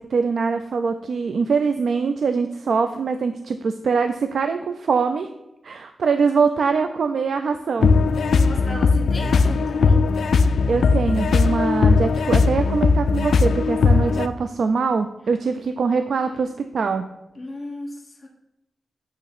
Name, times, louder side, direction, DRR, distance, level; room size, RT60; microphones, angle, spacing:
voice 1, 0.0-5.3 5.6-8.0 10.7-17.1, right 5 dB, 70° right, 8 dB, 0.4 m, -23 dB
sound 1, 7.8-14.3, left 4 dB, 85° left, 0.3 m, -18 dB
voice 2, 8.3-10.0 16.2-16.4 17.3-18.3, left 1 dB, 25° left, -1 dB, 1.3 m, -36 dB
8.4 x 2.9 x 5.8 m, 0.89 s
wide cardioid pair, 150°, 0 cm